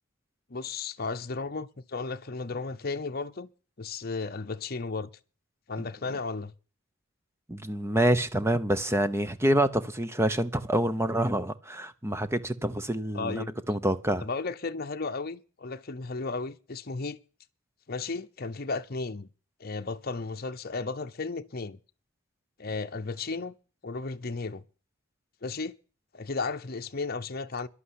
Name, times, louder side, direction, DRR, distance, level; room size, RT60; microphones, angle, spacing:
voice 1, 0.5-3.5 3.8-5.1 5.7-6.5 13.1-13.5 14.2-17.2 17.9-19.3 19.6-21.8 22.6-23.5 23.8-24.6 25.4-25.7 26.1-27.7, left 3 dB, 45° left, 0.8 m, -34 dB
voice 2, 7.5-14.2, right 1 dB, 10° right, 0.8 m, -27 dB
11.5 x 8.4 x 9.8 m
head